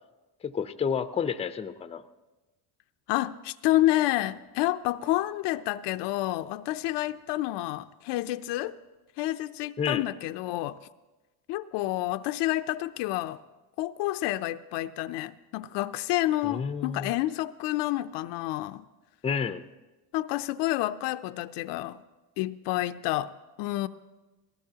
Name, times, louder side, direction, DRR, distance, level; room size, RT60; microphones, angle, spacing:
voice 1, 0.4-2.0 9.8-10.0 16.4-17.1 19.2-19.6, left 6 dB, 15° left, 11 dB, 0.5 m, -30 dB
voice 2, 3.1-8.7 9.2-10.8 11.5-13.4 13.8-18.8 20.1-22.0 22.4-23.3 23.6-23.9, left 16 dB, 65° left, 11 dB, 0.6 m, -29 dB
18.5 x 17.5 x 2.8 m, 1.1 s
supercardioid pair, 90°, 45 cm